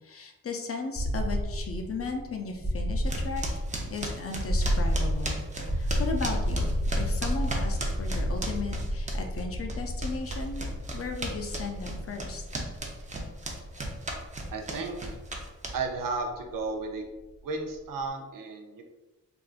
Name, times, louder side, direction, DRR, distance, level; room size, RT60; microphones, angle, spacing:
voice 1, 0.0-3.4 3.9-5.4 5.7-10.7 10.9-12.4, left 4 dB, 45° left, 3 dB, 0.5 m, -36 dB
sound 1, 0.9-16.8, equal, 5° left, 0.7 m, -31 dB
sound 2, 3.1-9.4 9.7-16.1, right 1 dB, 25° right, 0.5 m, -35 dB
voice 2, 14.5-15.2 15.7-17.0 17.4-18.8, right 3 dB, 75° right, 3 dB, 0.6 m, -33 dB
3.4 x 2.5 x 2.4 m, 1.1 s
wide cardioid pair, 90°, 33 cm